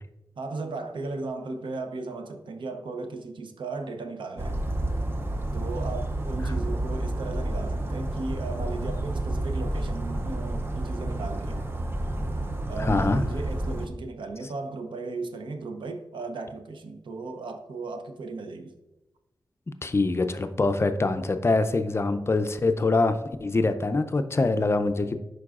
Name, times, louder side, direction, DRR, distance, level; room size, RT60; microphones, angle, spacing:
voice 1, 0.4-4.6 5.5-11.7 12.7-18.7, right 3 dB, 80° right, 6 dB, 0.6 m, -36 dB
Bird vocalization bird call bird song, 4.4-13.9, right 1 dB, 30° right, 0.5 m, -30 dB
voice 2, 12.8-13.2 19.8-25.2, left 3 dB, 30° left, 9 dB, 0.4 m, -24 dB
11.0 x 4.6 x 2.4 m, 1.0 s
wide cardioid pair, 100°, 8 cm